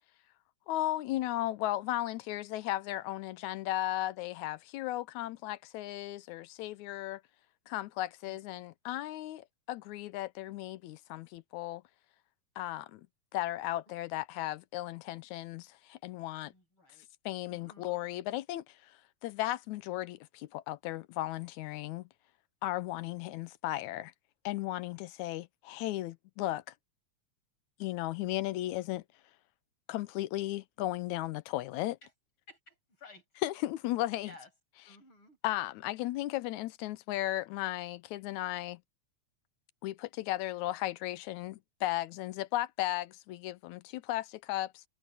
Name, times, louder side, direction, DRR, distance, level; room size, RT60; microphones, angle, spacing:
voice 1, 0.7-7.2 7.7-11.8 12.6-13.1 13.3-16.5 17.3-18.9 19.2-22.1 22.6-24.1 24.5-26.6 27.8-29.0 29.9-32.0 33.4-34.3 35.4-38.8 39.8-44.8, left 15 dB, 90° left, 2.1 m, -35 dB
voice 2, 16.4-17.1 17.4-17.9 32.0-32.1 32.5-33.3 34.1-34.5 34.8-35.4, left 2 dB, 45° left, 8.4 m, -56 dB
omnidirectional pair, 3.4 m